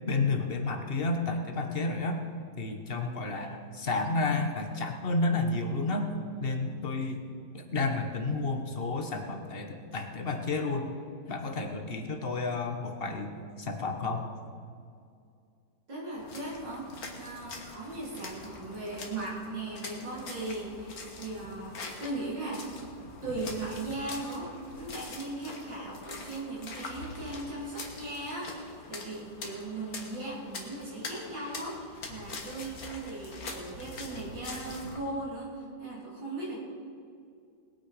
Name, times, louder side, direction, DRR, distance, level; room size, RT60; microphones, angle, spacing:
voice 1, 0.1-2.2 2.6-6.1 6.4-7.2 7.5-10.9 11.3-14.3, left 3 dB, 35° left, 4 dB, 1.2 m, -31 dB
voice 2, 15.9-22.7 23.2-36.6, right 2 dB, 75° right, -6 dB, 3.7 m, -38 dB
sound 1, 16.1-35.0, left 3 dB, 55° left, 1.9 m, -44 dB
20.0 x 8.9 x 5.0 m, 2.4 s
omnidirectional pair, 2.0 m